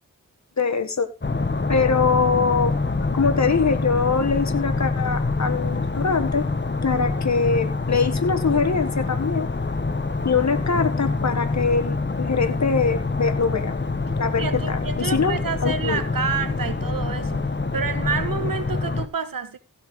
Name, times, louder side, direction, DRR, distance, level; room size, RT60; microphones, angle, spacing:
voice 1, 0.6-1.1 1.7-2.8 3.1-6.5 6.8-9.5 10.2-13.8 14.2-16.0, left 5 dB, 55° left, 1.6 m, -23 dB
sound 1, 1.2-19.1, left 3 dB, 30° left, 1.3 m, -26 dB
voice 2, 14.4-17.5 17.7-19.6, right 6 dB, 75° right, 1.4 m, -28 dB
15.5 x 6.1 x 4.9 m
wide cardioid pair, 60°, 34 cm